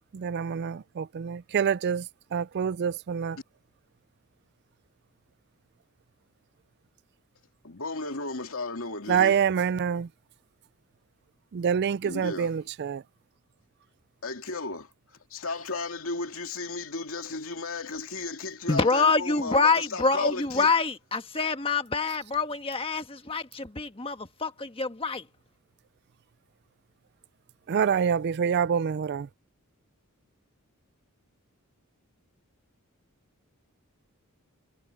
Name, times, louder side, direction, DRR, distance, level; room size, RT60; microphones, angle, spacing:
voice 1, 0.1-2.0 2.3-3.4 9.1-10.1 11.5-13.0 27.7-29.3, right 7 dB, 50° right, 0.3 m, -26 dB
voice 2, 7.6-9.4 12.0-12.7 14.2-14.9 15.3-20.7, left 3 dB, 65° left, 2.9 m, -34 dB
voice 3, 18.7-25.2, left 4 dB, 25° left, 1.4 m, -26 dB
head